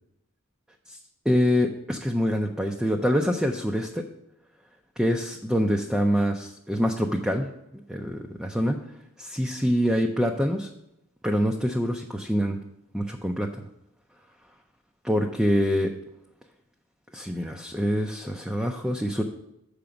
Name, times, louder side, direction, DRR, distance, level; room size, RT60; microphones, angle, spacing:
voice 1, 1.3-4.0 5.0-7.5 7.9-8.8 9.2-10.7 11.2-12.6 12.9-13.7 15.0-15.9 17.1-19.2, equal, 5° right, 2 dB, 0.5 m, -25 dB
6.9 x 5.1 x 6.9 m, 0.85 s
head